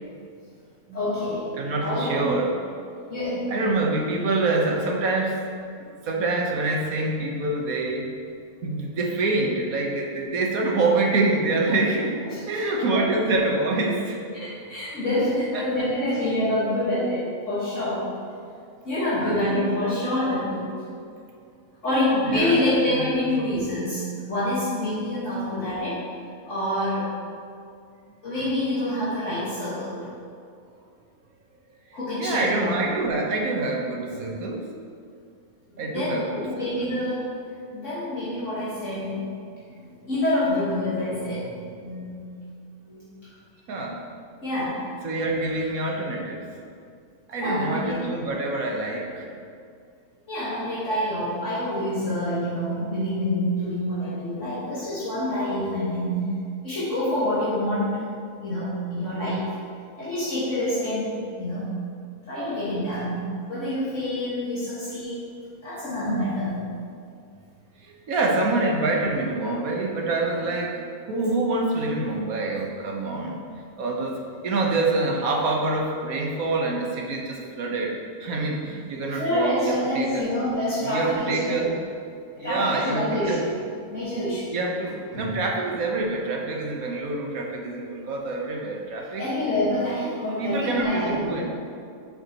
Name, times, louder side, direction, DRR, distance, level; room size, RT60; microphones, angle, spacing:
voice 1, 0.9-2.3 3.1-3.5 12.2-13.1 14.4-18.1 18.9-20.7 21.8-26.1 26.4-27.1 28.2-30.1 31.9-32.7 34.2-34.3 35.8-37.4 37.7-39.3 39.8-42.3 42.9-43.0 44.4-44.9 47.4-48.1 50.3-56.3 56.6-58.1 58.4-59.5 60.0-61.6 62.3-65.3 65.6-66.6 79.1-81.7 82.3-83.6 83.9-84.5 85.1-85.4 89.2-91.4, left 1 dB, 55° left, -11 dB, 1.9 m, -27 dB
voice 2, 1.6-2.6 3.5-5.4 6.0-8.0 8.6-12.2 12.5-14.5 15.5-15.9 19.0-19.6 20.7-20.9 21.9-23.5 32.2-34.7 35.8-37.1 43.7-44.0 45.0-46.4 47.3-49.3 64.5-64.7 67.8-73.5 73.8-74.2 74.4-80.3 80.8-81.7 82.4-83.4 84.5-89.3 90.4-91.4, right 2 dB, 70° right, 0 dB, 1.4 m, -26 dB
9.9 x 6.6 x 2.9 m, 2.3 s
omnidirectional pair, 1.6 m